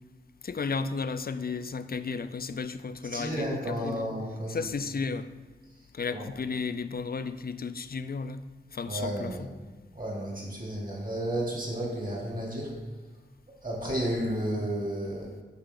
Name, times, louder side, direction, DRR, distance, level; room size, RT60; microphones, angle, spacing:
voice 1, 0.4-4.1 4.5-5.3 5.9-8.4 8.7-9.5, left 4 dB, 50° left, 12 dB, 0.4 m, -33 dB
voice 2, 3.1-4.6 6.1-6.3 8.9-9.4 9.9-12.8 13.6-15.4, right 1 dB, 45° right, -3 dB, 2.4 m, -32 dB
6.7 x 6.0 x 3.7 m, 1.3 s
wide cardioid pair, 45°, 20 cm